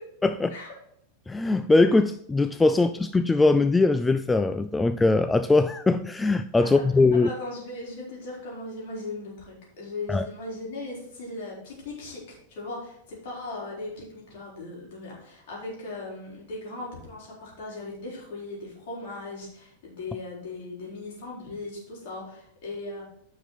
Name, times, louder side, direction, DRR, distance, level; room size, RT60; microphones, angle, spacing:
voice 1, 0.2-0.5 1.3-7.3 10.1-10.3, left 3 dB, 10° left, 10 dB, 0.3 m, -21 dB
voice 2, 7.2-23.0, left 2 dB, 50° left, -4 dB, 4.2 m, -38 dB
9.8 x 6.0 x 4.2 m, 0.71 s
figure-of-eight pair, 90°, 0 cm